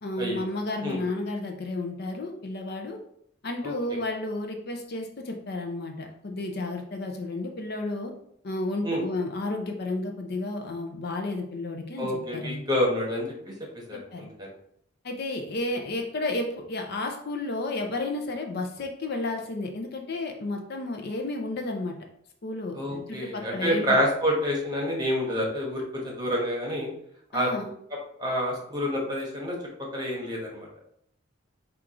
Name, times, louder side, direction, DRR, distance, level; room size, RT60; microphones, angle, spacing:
voice 1, 0.0-3.0 3.4-8.1 8.4-12.6 13.9-14.3 15.0-22.0 22.4-24.0 27.3-27.7, left 2 dB, 50° left, 3 dB, 0.5 m, -32 dB
voice 2, 3.6-4.0 8.8-9.0 12.0-13.5 13.9-14.5 22.7-26.9 27.3-27.5 28.2-29.6 29.9-30.7, equal, 20° right, -2 dB, 1.1 m, -28 dB
4.5 x 2.4 x 3.7 m, 0.69 s
head